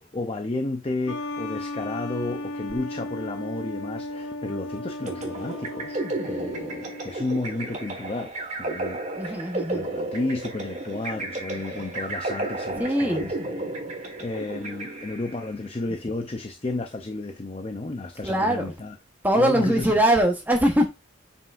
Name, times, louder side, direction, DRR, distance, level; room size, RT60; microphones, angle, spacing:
voice 1, 0.0-8.3 8.6-19.0 19.3-20.0, left 2 dB, 30° left, 0.5 m, -32 dB
sound 1, 1.1-7.4, left 1 dB, 85° left, 0.7 m, -35 dB
sound 2, 5.1-15.5, right 2 dB, 35° right, 1.5 m, -33 dB
voice 2, 9.2-9.8 12.8-13.2 18.2-18.7 19.2-20.9, right 1 dB, 10° right, 1.1 m, -22 dB
7.3 x 5.6 x 2.5 m
head